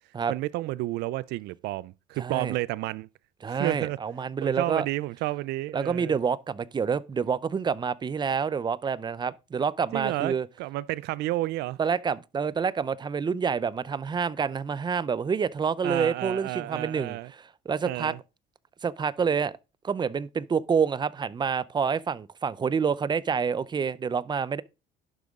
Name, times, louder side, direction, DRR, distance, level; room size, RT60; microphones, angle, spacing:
voice 1, 0.3-3.1 3.5-4.0 4.4-6.2 9.9-11.8 15.8-17.3 17.9-18.2, right 17 dB, 85° right, 0.5 m, -31 dB
voice 2, 2.2-2.5 3.4-4.9 5.7-10.5 11.8-18.1 18.8-19.5 19.8-24.6, right 6 dB, 25° right, 0.6 m, -28 dB
11.5 x 7.8 x 3.7 m
cardioid pair, 110°, 17 cm